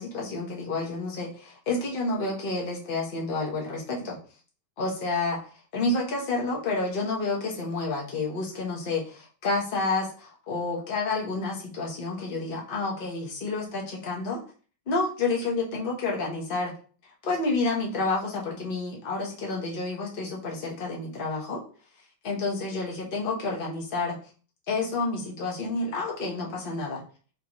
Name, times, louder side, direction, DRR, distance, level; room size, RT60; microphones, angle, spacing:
voice 1, 0.0-4.2 4.8-5.4 5.7-14.4 14.9-16.7 17.2-21.6 22.2-24.2 24.7-27.0, left 3 dB, 40° left, -2 dB, 0.8 m, -29 dB
3.8 x 3.6 x 3.0 m, 0.40 s
omnidirectional pair, 2.3 m